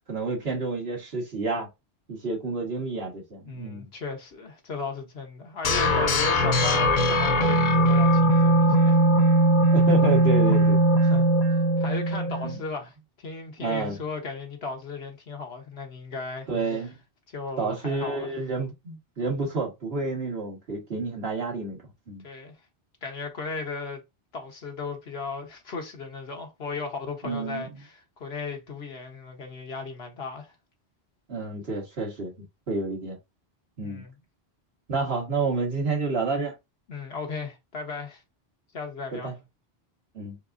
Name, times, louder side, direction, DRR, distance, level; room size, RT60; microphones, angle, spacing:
voice 1, 0.1-1.7 2.1-3.9 9.7-10.8 12.4-12.6 13.6-14.0 16.5-17.0 17.6-22.2 27.2-27.7 31.3-32.3 32.7-33.2 33.8-34.0 34.9-36.5 39.1-39.3 40.1-40.4, right 3 dB, 80° right, 1.8 m, -29 dB
voice 2, 3.5-9.0 10.5-10.7 11.0-11.3 11.8-16.7 17.3-18.3 22.2-22.5 23.0-24.0 24.3-30.5 33.8-34.1 36.9-38.2 38.7-39.3, left 4 dB, 80° left, 1.4 m, -36 dB
sound 1, 5.6-12.6, right 1 dB, 50° left, 0.9 m, -20 dB
4.6 x 3.5 x 2.6 m
omnidirectional pair, 1.0 m